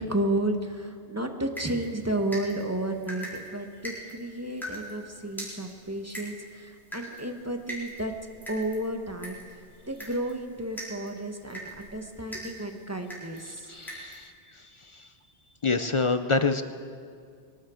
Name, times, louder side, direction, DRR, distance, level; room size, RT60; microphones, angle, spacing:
voice 1, 0.0-8.1 8.5-9.4 9.9-13.7, right 1 dB, 15° right, 5 dB, 1.0 m, -32 dB
sound 1, 1.6-14.3, equal, ahead, 4.2 m, -43 dB
voice 2, 13.5-14.3 14.9-15.1 15.6-16.6, left 3 dB, 40° left, 9 dB, 0.4 m, -27 dB
22.0 x 12.5 x 5.0 m, 2.2 s
omnidirectional pair, 1.1 m